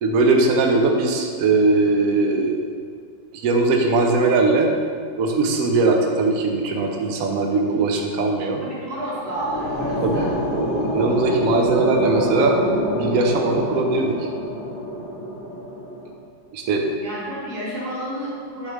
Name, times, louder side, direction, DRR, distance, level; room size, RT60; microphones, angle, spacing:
voice 1, 0.0-2.6 3.3-4.7 5.2-8.6 10.0-10.3 10.5-12.6 12.9-14.2 16.5-16.9, right 3 dB, 75° right, 2 dB, 0.8 m, -20 dB
voice 2, 8.6-10.3 17.0-18.7, right 1 dB, 45° right, -6 dB, 1.7 m, -30 dB
sound 1, 9.0-16.1, equal, 75° left, 1.6 m, -26 dB
8.2 x 3.6 x 3.1 m, 2.1 s
omnidirectional pair, 2.1 m